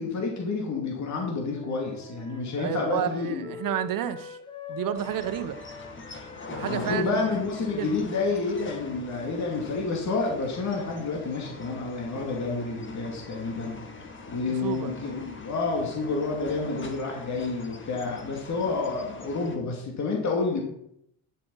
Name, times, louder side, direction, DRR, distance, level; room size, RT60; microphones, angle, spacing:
voice 1, 0.0-3.5 6.6-13.8 14.3-20.6, left 4 dB, 50° left, 0 dB, 2.8 m, -29 dB
Wind instrument woodwind instrument, 1.4-9.5, left 3 dB, 10° left, 1.8 m, -45 dB
voice 2, 2.6-4.4 4.7-5.6 6.5-7.2 7.8-7.9 14.6-14.9, right 10 dB, 60° right, 12 dB, 1.1 m, -30 dB
sound 1, 4.9-19.6, left 3 dB, 30° left, 2.0 m, -43 dB
11.0 x 7.7 x 5.6 m, 0.76 s
cardioid pair, 115°, 37 cm